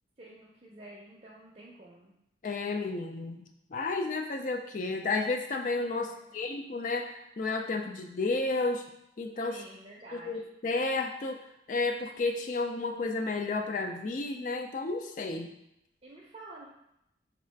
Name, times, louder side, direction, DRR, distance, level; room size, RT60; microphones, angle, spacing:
voice 1, 0.2-2.2 6.1-6.4 9.5-10.4 15.3-15.5 16.0-16.7, right 2 dB, 35° right, -3 dB, 0.5 m, -50 dB
voice 2, 2.4-3.4 3.7-8.8 9.2-9.6 10.2-11.4 11.7-15.5, left 3 dB, 45° left, 5 dB, 0.4 m, -32 dB
3.6 x 2.4 x 4.4 m, 0.82 s
head